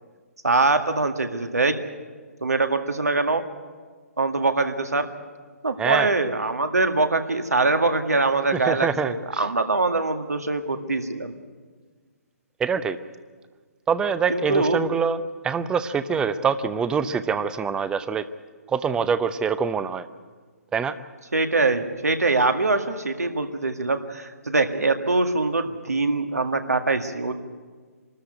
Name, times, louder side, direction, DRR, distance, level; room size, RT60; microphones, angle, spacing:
voice 1, 0.4-1.8 2.4-3.4 4.2-5.1 5.6-11.3 14.3-14.8 21.3-27.3, right 3 dB, 80° right, 6 dB, 1.9 m, -23 dB
voice 2, 5.8-6.1 8.5-9.4 12.6-13.0 13.9-15.2 15.4-18.2 18.7-20.1 20.7-20.9, right 6 dB, 10° right, 13 dB, 0.7 m, -24 dB
25.0 x 13.5 x 9.2 m, 1.5 s
figure-of-eight pair, 135°, 8 cm